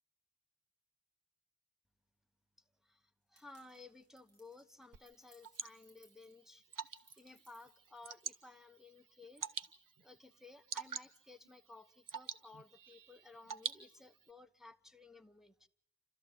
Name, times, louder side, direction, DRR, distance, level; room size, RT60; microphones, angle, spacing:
voice 1, 2.8-6.7 7.2-9.4 10.0-15.7, left 3 dB, ahead, 0.9 m, -57 dB
sound 1, 3.4-8.6, right 1 dB, 40° right, 3.1 m, -71 dB
Water / Drip, 4.9-14.3, right 6 dB, 60° right, 0.9 m, -48 dB
29.0 x 13.5 x 8.2 m
wide cardioid pair, 85°, 36 cm